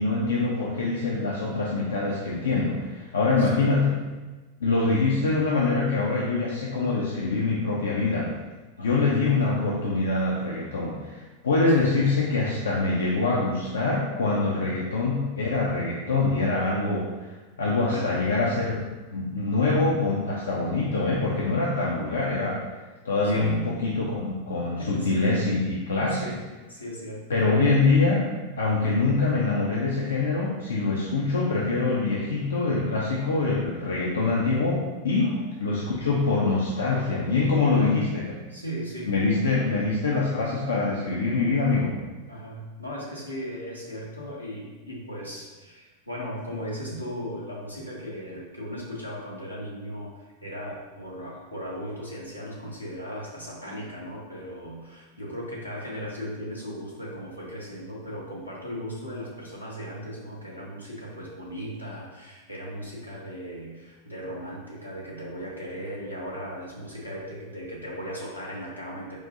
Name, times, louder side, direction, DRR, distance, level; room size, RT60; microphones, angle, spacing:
voice 1, 0.0-4.0 4.6-8.3 8.8-17.3 17.6-18.7 19.1-22.6 23.0-26.3 27.3-28.2 28.6-35.3 35.6-38.4 39.1-42.0, left 3 dB, 65° left, -4 dB, 0.5 m, -24 dB
voice 2, 8.8-9.1 14.4-14.8 17.7-18.2 23.2-23.8 24.8-25.3 26.2-27.3 35.2-35.5 37.5-38.0 38.5-39.2 42.3-69.2, equal, 90° left, -5 dB, 0.9 m, -37 dB
4.7 x 2.6 x 2.6 m, 1.2 s
figure-of-eight pair, 90°, 0 cm